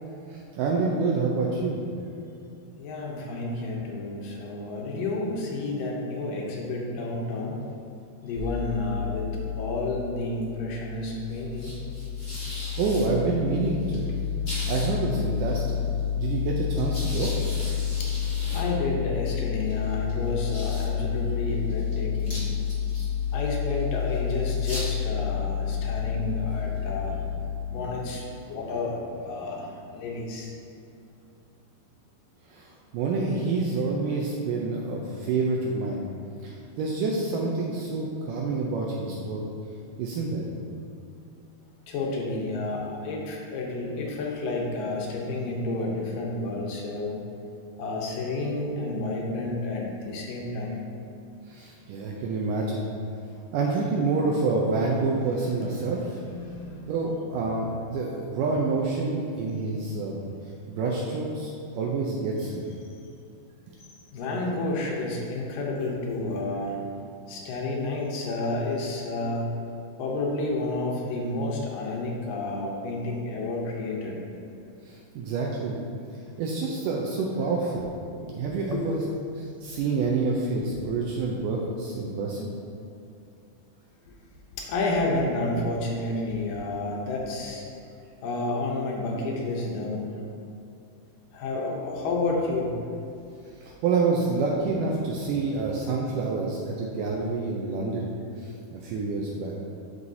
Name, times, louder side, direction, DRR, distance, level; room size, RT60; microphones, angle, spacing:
voice 1, 0.3-1.8 12.4-14.1 14.7-15.8 16.1-17.3 32.5-36.0 36.4-39.4 40.0-40.5 51.5-52.9 53.5-56.0 56.9-60.2 60.7-62.7 74.9-75.8 76.4-79.0 79.6-82.5 93.6-98.1 98.4-99.6, right 3 dB, 85° right, -2 dB, 1.9 m, -28 dB
voice 2, 2.8-7.6 8.2-11.7 18.0-18.2 18.5-22.4 23.3-30.5 41.9-47.2 47.8-50.8 56.2-56.9 64.1-66.8 67.3-69.5 70.0-74.2 78.4-79.0 84.5-87.6 88.2-90.1 91.3-92.8, left 2 dB, 75° left, -1 dB, 2.3 m, -30 dB
sound 1, 8.3-28.2, left 8 dB, 45° left, 0.8 m, -30 dB
12.0 x 4.7 x 2.7 m, 2.5 s
omnidirectional pair, 4.4 m